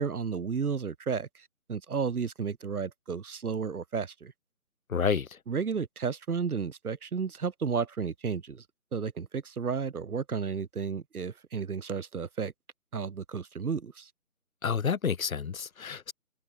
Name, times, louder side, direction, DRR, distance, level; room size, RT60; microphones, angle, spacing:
voice 1, 0.0-4.3 5.5-8.6 8.9-12.5 12.9-14.1, right 6 dB, 90° right, 1.2 m, -32 dB
voice 2, 4.9-5.3 14.6-16.1, left 6 dB, 70° left, 1.0 m, -29 dB
figure-of-eight pair, 170°, 43 cm